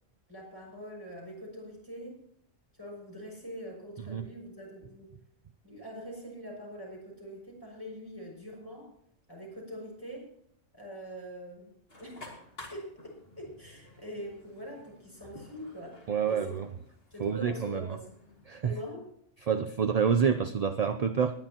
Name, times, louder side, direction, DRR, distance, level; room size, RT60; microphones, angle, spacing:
voice 1, 0.3-2.2 2.7-5.1 5.6-8.9 9.3-10.3 10.7-12.3 12.7-16.5 17.1-18.1 18.6-19.1, equal, 15° left, -2 dB, 6.1 m, -43 dB
sound 1, 11.9-18.6, left 1 dB, 50° left, 2.9 m, -52 dB
voice 2, 16.1-16.6 17.2-18.0 18.5-18.7 19.5-21.4, right 7 dB, 50° right, 9 dB, 0.5 m, -28 dB
20.5 x 10.5 x 2.9 m, 0.69 s
omnidirectional pair, 1.3 m